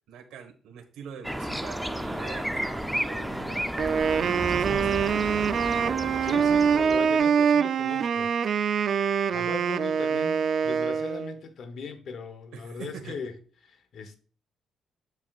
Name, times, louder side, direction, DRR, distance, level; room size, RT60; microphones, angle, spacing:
voice 1, 0.1-3.7 4.2-5.6 6.2-6.3 12.5-13.2, right 7 dB, 90° right, 1.3 m, -43 dB
sound 1, 1.2-7.3, equal, 5° right, 0.5 m, -32 dB
Wind instrument woodwind instrument, 3.8-11.4, right 7 dB, 60° right, 0.4 m, -24 dB
voice 2, 6.2-8.3 8.8-13.4 13.6-14.2, left 5 dB, 65° left, 1.0 m, -39 dB
7.9 x 7.3 x 2.4 m
cardioid pair, 90°, 0 cm